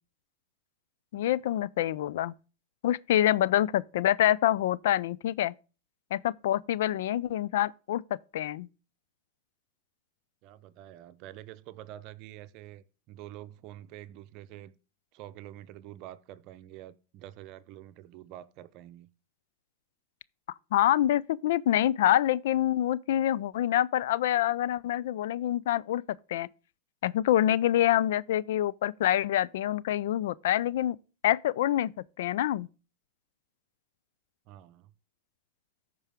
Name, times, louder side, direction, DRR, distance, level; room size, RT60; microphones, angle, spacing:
voice 1, 1.1-2.3 2.8-5.5 6.1-8.0 8.3-8.7 20.7-26.5 27.0-31.0 31.2-31.9 32.2-32.7, left 12 dB, 70° left, 0.4 m, -26 dB
voice 2, 10.4-14.7 15.1-19.1 34.5-34.9, right 13 dB, 50° right, 0.7 m, -47 dB
14.0 x 4.7 x 3.6 m
hypercardioid pair, 115°, 0 cm